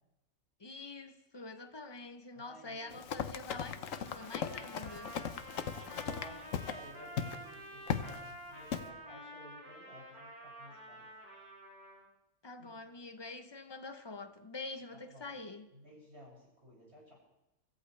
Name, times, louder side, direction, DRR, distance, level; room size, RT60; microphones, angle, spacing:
voice 1, 0.6-5.2 5.8-6.0 12.4-15.7, left 3 dB, 25° left, 0.5 m, -46 dB
voice 2, 2.3-3.0 5.6-11.1 12.6-12.8 14.9-15.3 15.7-17.2, equal, 45° right, 6.7 m, -55 dB
Run, 2.9-6.8 7.2-7.4 7.9-8.2 8.7-8.9, left 8 dB, 65° left, 1.1 m, -38 dB
Trumpet, 3.7-12.0, equal, 30° right, 5.7 m, -50 dB
25.0 x 14.0 x 3.3 m
omnidirectional pair, 1.5 m